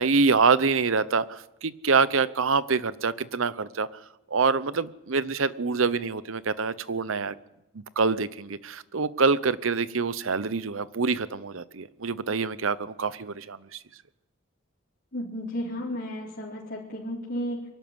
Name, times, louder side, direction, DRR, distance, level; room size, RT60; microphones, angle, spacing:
voice 1, 0.0-3.9 4.3-7.3 7.7-13.8, right 4 dB, 75° right, 16 dB, 0.8 m, -25 dB
voice 2, 15.1-17.7, equal, 55° left, -7 dB, 4.0 m, -33 dB
23.5 x 12.5 x 9.6 m, 0.91 s
head